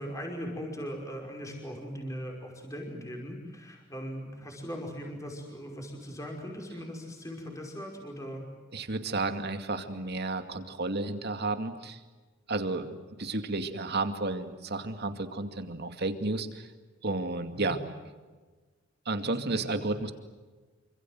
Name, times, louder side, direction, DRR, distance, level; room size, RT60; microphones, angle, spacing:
voice 1, 0.0-8.4 17.5-17.8 19.2-19.9, equal, 15° left, 1 dB, 5.4 m, -39 dB
voice 2, 8.7-12.0 12.5-16.6 17.0-17.8 19.1-20.1, right 2 dB, 55° right, 7 dB, 2.4 m, -32 dB
28.0 x 26.0 x 7.9 m, 1.3 s
head